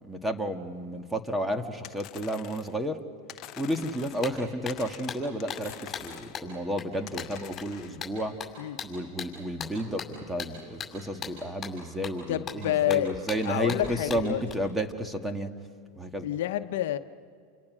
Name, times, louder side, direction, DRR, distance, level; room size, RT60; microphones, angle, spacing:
voice 1, 0.0-3.0 3.6-8.3 8.8-15.5 16.0-16.3, equal, 5° right, 6 dB, 1.9 m, -32 dB
sound 1, 1.8-2.8 3.3-4.4 4.7-6.4 7.1-8.0, left 12 dB, 45° left, 1.0 m, -46 dB
sound 2, 3.8-3.9 4.2-14.5, left 7 dB, 25° left, 6.7 m, -40 dB
voice 2, 12.3-13.1 13.4-14.4 16.2-17.0, left 13 dB, 70° left, 9 dB, 1.0 m, -28 dB
29.0 x 28.5 x 6.3 m, 2.3 s
hypercardioid pair, 105°, 0 cm